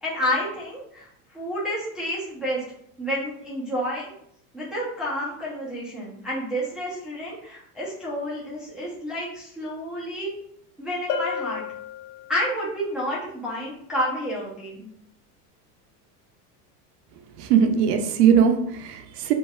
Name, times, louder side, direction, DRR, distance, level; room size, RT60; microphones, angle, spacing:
voice 1, 0.0-2.6 3.0-4.1 4.5-10.3 10.8-11.6 12.3-14.9, equal, ahead, -8 dB, 0.6 m, -30 dB
Bell, 11.1-12.7, left 6 dB, 80° left, 0.6 m, -32 dB
voice 2, 17.4-19.3, right 7 dB, 85° right, 6 dB, 0.6 m, -20 dB
3.1 x 2.5 x 2.3 m, 0.70 s
supercardioid pair, 140°, 46 cm